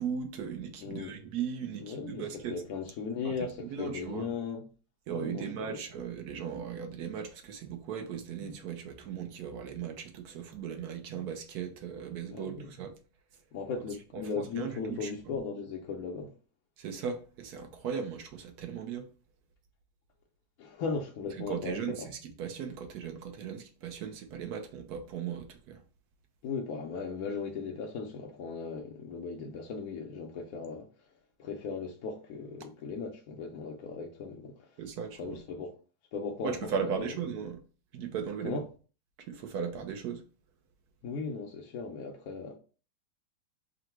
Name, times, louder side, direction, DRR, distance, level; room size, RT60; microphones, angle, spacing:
voice 1, 0.0-2.6 3.2-3.3 3.7-4.3 5.1-12.9 14.1-14.2 14.6-15.4 16.8-19.1 21.5-25.8 34.8-35.4 36.4-37.6 37.9-38.6 39.2-40.2, right 7 dB, 70° right, 1.0 m, -37 dB
voice 2, 0.8-1.1 1.8-4.7 5.1-5.8 12.3-12.7 13.5-16.3 20.6-22.1 26.4-30.9 31.4-34.7 35.2-35.8 36.1-37.2 38.4-38.6 41.0-42.6, left 5 dB, 65° left, 0.9 m, -37 dB
3.8 x 2.1 x 4.4 m
omnidirectional pair, 2.1 m